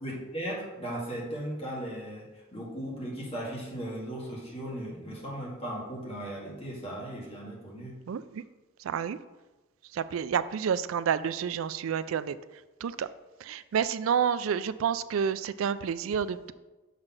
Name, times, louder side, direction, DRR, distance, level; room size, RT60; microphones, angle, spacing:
voice 1, 0.0-8.0, right 1 dB, 30° left, -4 dB, 2.1 m, -37 dB
voice 2, 8.1-8.4 8.8-9.2 9.9-12.4 12.8-13.1 13.4-16.5, right 7 dB, 80° right, 15 dB, 0.3 m, -29 dB
6.4 x 4.1 x 6.0 m, 1.1 s
head